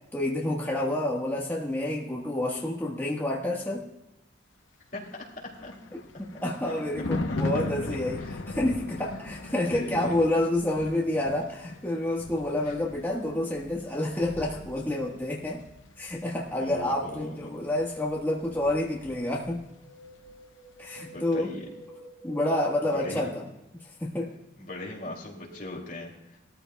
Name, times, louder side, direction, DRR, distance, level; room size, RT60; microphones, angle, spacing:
voice 1, 0.1-3.9 6.2-8.2 8.5-15.6 16.0-19.6 20.8-21.5 22.2-23.4 24.0-24.3, left 1 dB, 10° left, -3 dB, 1.3 m, -28 dB
Thunder, 5.2-19.7 20.0-20.3, left 2 dB, 85° left, 0.8 m, -39 dB
voice 2, 7.3-7.7 8.3-8.4 9.5-10.1 12.7-12.8 16.5-17.5 20.9-21.7 22.9-23.3 24.6-26.4, left 1 dB, 45° left, -1 dB, 2.6 m, -39 dB
Wind, 19.6-23.9 24.2-24.3, right 1 dB, 15° right, 1.9 m, -50 dB
18.5 x 13.5 x 2.3 m, 0.91 s
head